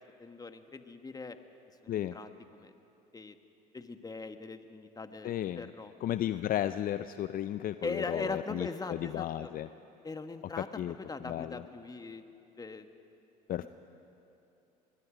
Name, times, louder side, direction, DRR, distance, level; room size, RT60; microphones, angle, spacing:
voice 1, 0.2-1.4 1.8-2.7 3.1-3.4 3.7-5.9 7.8-9.5 10.0-12.2 12.6-12.9, left 3 dB, 20° left, 8 dB, 1.4 m, -40 dB
voice 2, 5.2-5.7 6.0-9.7 10.6-10.9 11.3-11.6 13.5-13.7, left 12 dB, 45° left, 12 dB, 0.5 m, -34 dB
24.0 x 21.0 x 5.1 m, 2.8 s
hypercardioid pair, 70°, 20 cm